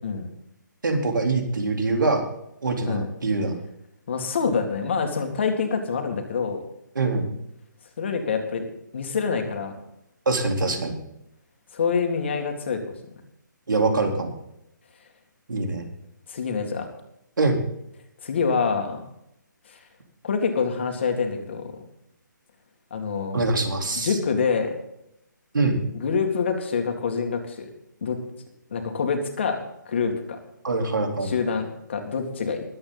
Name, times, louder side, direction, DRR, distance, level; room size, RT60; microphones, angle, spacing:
voice 1, 0.8-2.2 2.6-3.6 7.0-7.3 10.3-10.9 13.7-14.3 15.5-15.9 17.4-17.6 23.3-24.2 25.5-25.8 30.6-31.3, right 3 dB, 75° right, 3 dB, 3.8 m, -24 dB
voice 2, 4.1-6.6 8.0-8.7 8.9-9.7 11.7-12.8 16.3-16.9 18.2-19.1 19.7-19.8 20.2-21.7 22.9-23.4 24.0-24.8 25.9-27.7 28.0-28.2 28.7-29.6 29.9-30.4 31.2-32.6, left 5 dB, 35° left, 4 dB, 2.1 m, -26 dB
22.0 x 8.8 x 4.0 m, 0.80 s
hypercardioid pair, 175°, 11 cm